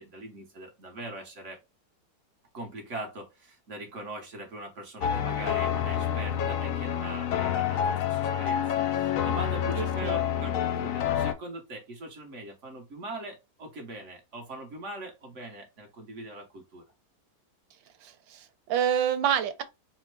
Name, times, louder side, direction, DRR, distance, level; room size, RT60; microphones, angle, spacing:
voice 1, 0.0-1.6 2.5-8.6 8.9-16.8, right 1 dB, 45° right, 1.3 m, -41 dB
sound 1, 5.0-11.3, left 9 dB, 70° left, 0.7 m, -28 dB
voice 2, 9.8-10.2 18.0-19.6, right 9 dB, 90° right, 1.4 m, -28 dB
4.2 x 2.1 x 4.5 m
omnidirectional pair, 1.9 m